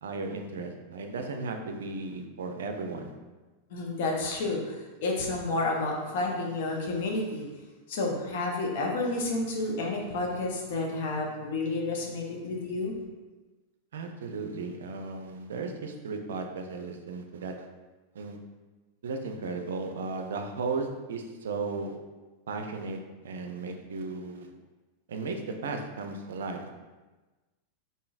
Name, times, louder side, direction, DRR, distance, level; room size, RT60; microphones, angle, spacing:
voice 1, 0.0-3.1 13.9-17.7 18.1-18.4 19.0-22.0 22.5-24.5 25.1-26.7, right 3 dB, 65° right, 5 dB, 0.4 m, -35 dB
voice 2, 3.7-7.5 7.9-12.9, left 2 dB, 55° left, 0 dB, 0.7 m, -30 dB
3.8 x 3.8 x 2.4 m, 1.2 s
figure-of-eight pair, 90°, 0 cm